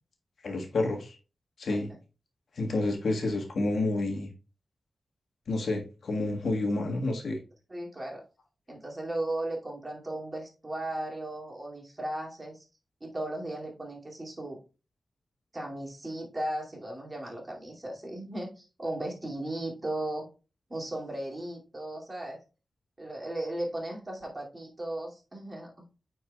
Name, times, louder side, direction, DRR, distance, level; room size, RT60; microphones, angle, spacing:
voice 1, 0.4-1.2 1.6-1.9 2.5-4.3 5.5-7.4, left 2 dB, 80° left, 3 dB, 1.4 m, -29 dB
voice 2, 1.6-2.0 7.7-8.2 8.7-12.6 13.0-14.6 15.5-20.3 20.7-22.4 23.0-25.7, right 1 dB, 25° right, -2 dB, 2.4 m, -36 dB
9.4 x 4.6 x 2.3 m, 0.33 s
wide cardioid pair, 80°, 0 cm